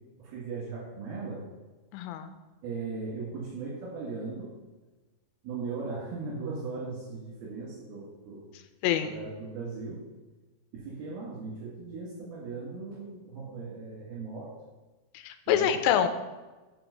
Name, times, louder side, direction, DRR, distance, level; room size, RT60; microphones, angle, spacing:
voice 1, 0.2-1.5 2.6-4.5 5.4-8.5 9.0-10.0 10.7-14.5 15.5-15.8, right 4 dB, 80° right, -6 dB, 3.6 m, -38 dB
voice 2, 1.9-2.3 8.8-9.1 15.2-16.1, left 9 dB, 85° left, 9 dB, 2.4 m, -25 dB
7.7 x 4.2 x 6.8 m, 1.2 s
omnidirectional pair, 4.3 m